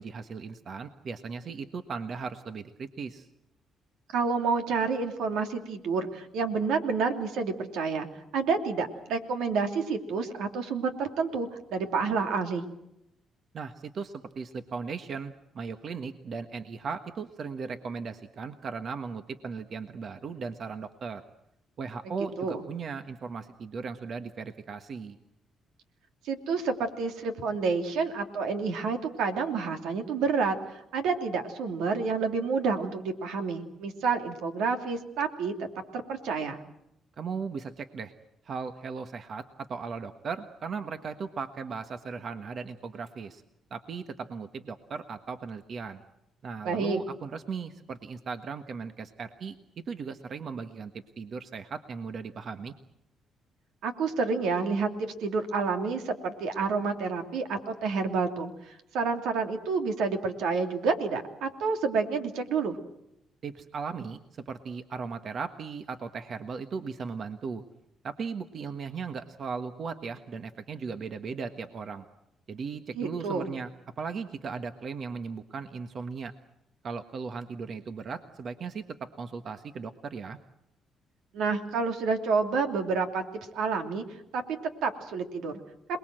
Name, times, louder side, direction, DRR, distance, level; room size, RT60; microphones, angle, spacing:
voice 1, 0.0-3.3 13.5-21.2 21.8-25.2 37.2-38.1 38.4-43.4 43.7-46.0 46.4-49.5 49.9-50.9 51.2-52.7 63.4-64.2 64.5-67.6 68.0-72.0 72.5-73.7 74.0-76.3 76.8-80.4, right 5 dB, 55° right, 8 dB, 1.4 m, -37 dB
voice 2, 4.1-8.1 8.3-12.6 22.0-22.6 26.2-30.6 30.9-35.7 35.9-36.6 46.6-47.0 53.8-58.5 58.9-62.8 72.9-73.5 81.3-83.2 83.5-84.0 84.3-84.4 84.8-85.6, right 4 dB, 90° right, 6 dB, 2.9 m, -29 dB
27.5 x 20.5 x 7.8 m, 0.81 s
cardioid pair, 90°, 0 cm